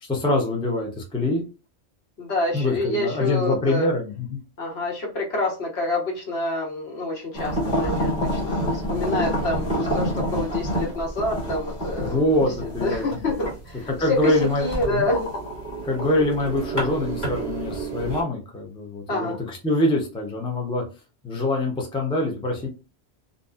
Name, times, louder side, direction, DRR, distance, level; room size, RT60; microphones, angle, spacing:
voice 1, 0.0-1.4 2.5-4.4 12.0-13.2 13.9-15.1 15.8-20.8 21.2-22.7, left 1 dB, 5° left, 0 dB, 0.4 m, -24 dB
voice 2, 2.2-3.9 4.6-12.4 12.8-15.3 19.1-19.4, left 2 dB, 65° left, -1 dB, 1.2 m, -27 dB
sound 1, 7.3-18.2, right 1 dB, 25° left, 1.4 m, -28 dB
2.6 x 2.5 x 2.3 m, 0.31 s
omnidirectional pair, 1.2 m